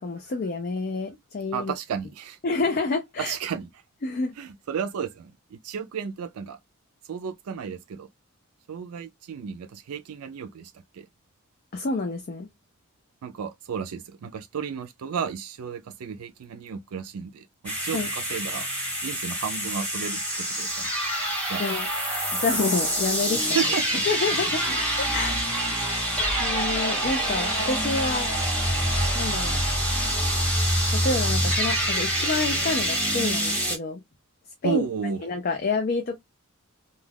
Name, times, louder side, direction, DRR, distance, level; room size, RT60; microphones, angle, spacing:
voice 1, 0.0-1.7 2.4-3.4 4.0-4.3 11.7-12.5 17.9-18.1 21.6-21.9 22.4-23.6 24.1-24.6 25.0-25.4 26.4-28.3 29.1-29.6 30.9-34.0 34.6-34.9 35.2-36.2, left 3 dB, 40° left, 0.4 m, -28 dB
voice 2, 1.5-2.4 3.2-3.7 4.4-6.6 7.1-8.1 8.7-11.1 13.2-18.7 19.0-20.9 21.5-21.7 23.4-24.0 24.7-24.8 30.2-30.5 34.6-35.2, right 7 dB, 80° right, 0.4 m, -33 dB
sound 1, 17.6-33.8, equal, 5° left, 1.1 m, -26 dB
2.3 x 2.2 x 3.3 m
head